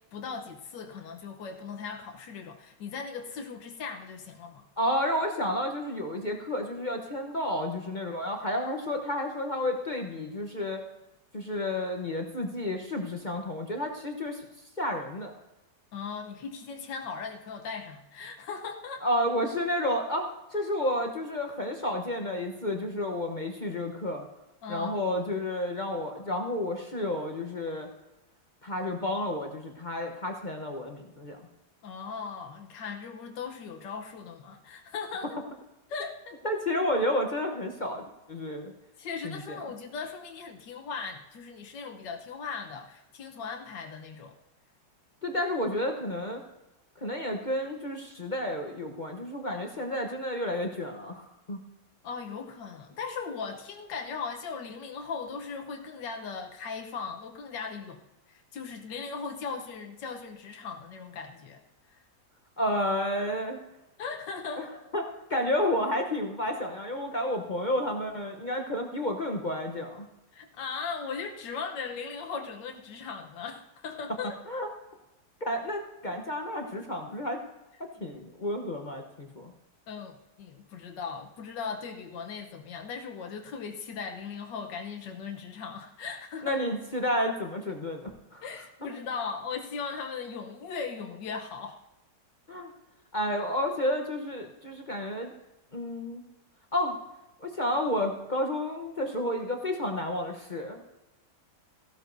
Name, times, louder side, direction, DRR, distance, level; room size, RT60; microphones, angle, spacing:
voice 1, 0.0-4.7 15.9-19.1 19.8-19.9 24.6-25.0 31.8-35.4 35.9-36.4 39.0-44.4 52.0-58.0 58.3-61.6 61.9-62.0 64.0-64.7 70.3-74.4 76.1-76.2 79.9-86.6 88.4-91.8, left 5 dB, 90° left, 4 dB, 1.6 m, -38 dB
voice 2, 4.8-10.8 11.3-14.4 14.8-15.3 19.0-24.2 24.7-27.9 28.6-31.4 36.4-38.7 39.2-39.6 45.2-46.4 47.0-51.6 62.6-63.6 64.6-64.7 64.9-70.1 74.5-74.7 75.4-77.4 78.0-79.5 86.4-88.4 88.8-88.9 92.5-92.7 93.1-95.3 95.7-96.2 96.7-97.0 97.4-100.8, left 1 dB, 35° left, 3 dB, 0.9 m, -31 dB
15.5 x 12.5 x 2.6 m, 0.98 s
omnidirectional pair, 1.9 m